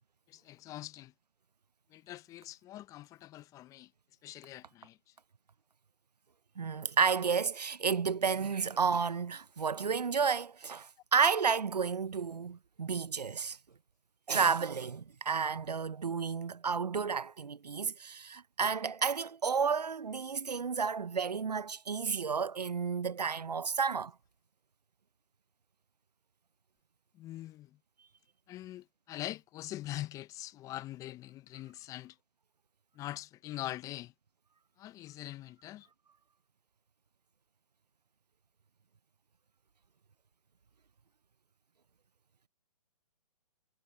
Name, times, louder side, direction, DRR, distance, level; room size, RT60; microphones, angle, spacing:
voice 1, 0.3-1.1 1.9-3.9 4.2-5.1 27.1-27.8 28.5-32.2 32.9-34.1 34.8-35.9, left 14 dB, 15° left, 1.0 m, -43 dB
voice 2, 6.6-13.6 14.3-24.1, right 5 dB, 85° right, 0.8 m, -31 dB
figure-of-eight pair, 140°, 20 cm